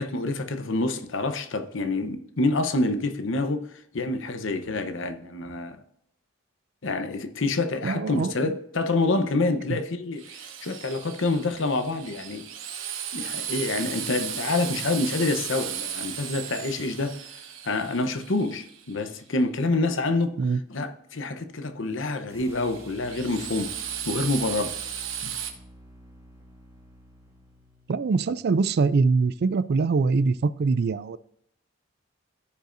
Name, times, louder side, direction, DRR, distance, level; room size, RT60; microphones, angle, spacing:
voice 1, 0.0-5.8 6.8-10.3 10.6-12.5 13.1-17.2 17.6-20.4 20.7-23.7 24.0-24.7 25.2-25.4, left 2 dB, 70° left, 0.9 m, -27 dB
voice 2, 7.8-8.5 9.7-9.8 20.4-20.6 27.9-31.2, right 4 dB, 55° right, 0.4 m, -23 dB
Drill, 10.2-19.1 22.5-25.5, right 9 dB, 75° right, 1.1 m, -35 dB
sound 1, 22.3-28.4, equal, 15° right, 2.0 m, -50 dB
14.5 x 5.4 x 2.6 m
head